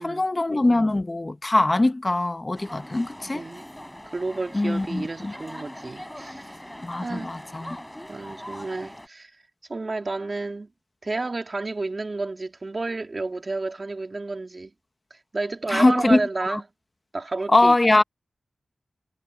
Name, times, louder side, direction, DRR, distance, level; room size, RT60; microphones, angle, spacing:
voice 1, 0.0-3.4 4.5-5.3 6.8-7.8 15.7-16.6 17.5-18.0, left 2 dB, 30° left, 1.0 m, -22 dB
sound 1, 2.5-9.1, equal, 10° left, 3.6 m, -41 dB
voice 2, 4.1-6.6 7.0-7.4 8.1-9.3 9.7-10.7 11.0-14.7 15.1-16.6 17.1-17.9, right 3 dB, 45° right, 2.6 m, -31 dB
wide cardioid pair, 65°, 0 cm